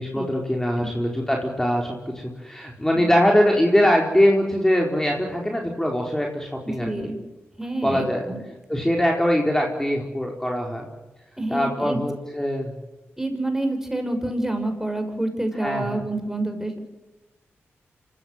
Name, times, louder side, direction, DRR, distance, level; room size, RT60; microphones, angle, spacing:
voice 1, 0.0-7.1 7.8-8.2 8.7-10.9 11.5-12.7 15.6-16.0, equal, 10° left, 0 dB, 4.4 m, -22 dB
voice 2, 6.8-7.2 7.6-8.4 11.4-12.0 13.2-16.8, right 1 dB, 10° right, 6 dB, 6.0 m, -28 dB
26.0 x 15.0 x 9.5 m, 1.1 s
cardioid pair, 50°, 5 cm